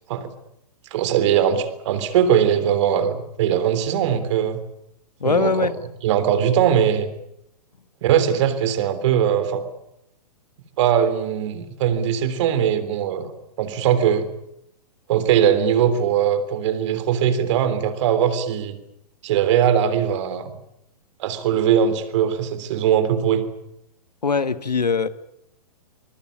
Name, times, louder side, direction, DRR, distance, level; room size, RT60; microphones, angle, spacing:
voice 1, 0.9-4.6 5.2-5.7 6.0-7.1 8.0-9.6 10.8-13.3 13.6-14.3 15.1-18.8 19.2-20.5 21.2-23.4, right 9 dB, 45° right, 3.5 m, -20 dB
voice 2, 5.2-5.7 24.2-25.1, left 5 dB, 80° left, 1.5 m, -21 dB
25.5 x 21.5 x 8.7 m
figure-of-eight pair, 120°, 20 cm